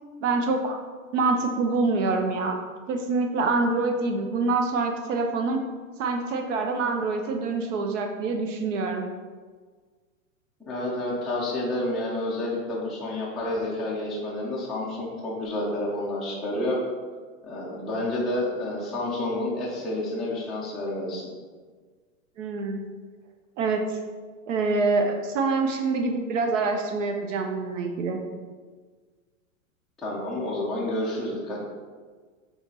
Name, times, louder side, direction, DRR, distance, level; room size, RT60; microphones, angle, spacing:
voice 1, 0.2-0.8 1.1-2.6 2.9-5.6 6.0-9.1 22.4-22.8 23.6-23.8 24.5-28.2, right 3 dB, 65° right, 4 dB, 0.7 m, -25 dB
voice 2, 10.7-16.8 17.4-21.3 30.0-31.6, left 1 dB, ahead, -7 dB, 0.3 m, -29 dB
5.6 x 3.0 x 2.8 m, 1.5 s
hypercardioid pair, 130°, 41 cm